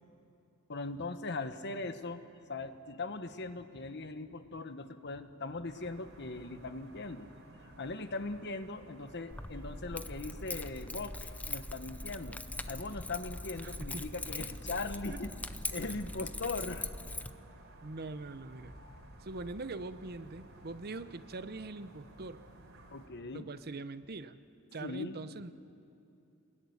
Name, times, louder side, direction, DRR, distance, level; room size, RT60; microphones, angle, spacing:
voice 1, 0.7-2.2 2.5-7.3 7.6-12.4 12.7-15.3 15.7-16.9 22.9-23.5 24.8-25.2, left 3 dB, 55° left, 10 dB, 1.2 m, -40 dB
sound 1, 5.7-23.1, right 1 dB, 70° right, 4.3 m, -55 dB
Keys jangling, 9.3-17.3, left 2 dB, 5° left, 0.6 m, -41 dB
voice 2, 13.6-14.1 15.1-15.2 17.8-18.7 19.2-22.4 23.3-24.4 24.7-25.5, right 3 dB, 50° right, 12 dB, 0.8 m, -42 dB
25.5 x 20.5 x 9.7 m, 2.7 s
head